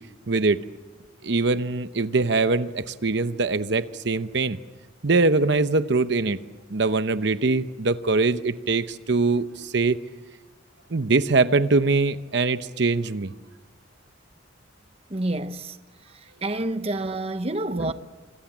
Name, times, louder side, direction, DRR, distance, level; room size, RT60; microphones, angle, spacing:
voice 1, 0.3-0.6 1.2-4.6 5.0-6.4 6.7-10.0 10.9-13.3 17.7-17.9, right 3 dB, 60° right, 0.8 m, -22 dB
voice 2, 15.1-15.8 16.4-17.9, right 2 dB, 30° right, 0.9 m, -28 dB
29.0 x 26.5 x 7.4 m
head